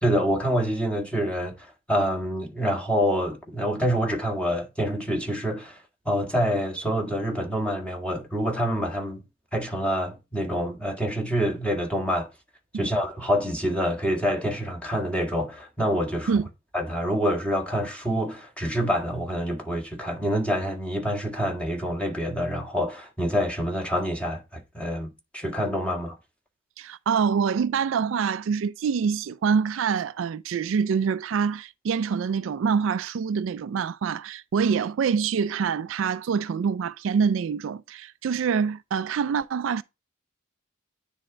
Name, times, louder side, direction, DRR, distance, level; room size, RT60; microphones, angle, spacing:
voice 1, 0.0-9.2 9.5-12.3 12.7-16.4 16.7-26.2, equal, 5° left, 1.7 m, -27 dB
voice 2, 26.8-39.8, right 6 dB, 70° right, 0.3 m, -25 dB
9.8 x 3.5 x 5.0 m
head